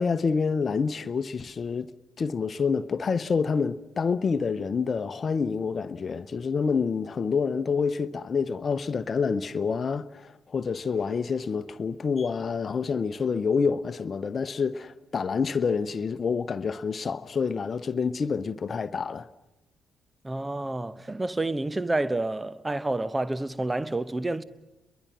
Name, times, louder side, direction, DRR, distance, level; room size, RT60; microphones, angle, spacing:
voice 1, 0.0-1.9 2.2-19.3, left 5 dB, 40° left, 1.0 m, -27 dB
voice 2, 20.2-24.4, right 2 dB, 20° right, 1.1 m, -29 dB
29.0 x 22.5 x 6.1 m
figure-of-eight pair, 40°, 0 cm